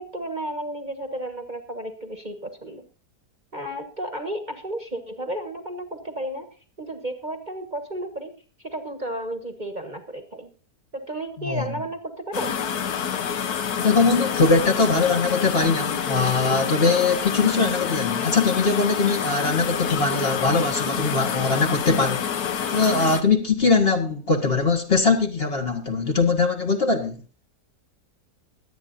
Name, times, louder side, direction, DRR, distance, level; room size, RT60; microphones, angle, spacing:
voice 1, 0.0-2.8 3.5-6.5 6.8-8.3 8.6-10.5 10.9-12.5, right 1 dB, 30° right, 1.4 m, -33 dB
voice 2, 11.4-11.7 13.8-22.2 22.7-27.2, left 4 dB, 40° left, 1.6 m, -21 dB
sound 1, 12.3-23.2, left 7 dB, 70° left, 1.5 m, -27 dB
22.0 x 9.0 x 2.6 m
omnidirectional pair, 1.8 m